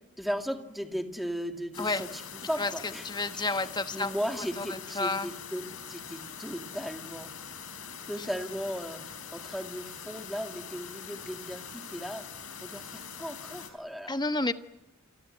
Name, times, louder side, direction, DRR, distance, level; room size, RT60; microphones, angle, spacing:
voice 1, 0.2-2.2 2.5-3.0 3.4-3.7 3.9-7.3 8.1-14.2, equal, ahead, 5 dB, 2.3 m, -36 dB
sound 1, 1.7-13.7, left 7 dB, 75° left, 4.3 m, -43 dB
voice 2, 3.0-4.1 4.6-5.3 14.1-14.5, left 2 dB, 20° left, 9 dB, 1.2 m, -30 dB
28.5 x 23.0 x 8.0 m, 0.94 s
head